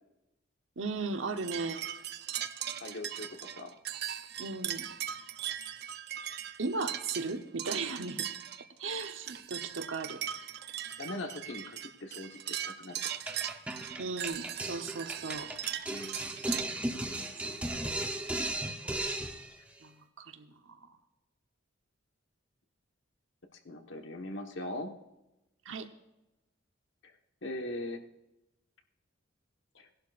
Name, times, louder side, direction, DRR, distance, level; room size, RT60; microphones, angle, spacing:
voice 1, 0.8-1.9 4.4-4.8 6.6-8.3 8.8-10.2 14.0-15.5 17.4-17.6 19.8-21.0 25.6-25.9, right 3 dB, 85° right, 6 dB, 1.1 m, -37 dB
sound 1, 1.4-16.6, right 10 dB, 55° right, 0.6 m, -39 dB
voice 2, 2.8-3.7 11.0-13.2 15.9-16.2 23.5-24.9 27.0-27.1 27.4-28.0 29.7-29.9, left 1 dB, 70° left, 4 dB, 1.3 m, -41 dB
sound 2, 13.3-19.6, right 1 dB, 5° right, 0.9 m, -36 dB
18.0 x 11.5 x 2.5 m, 0.96 s
head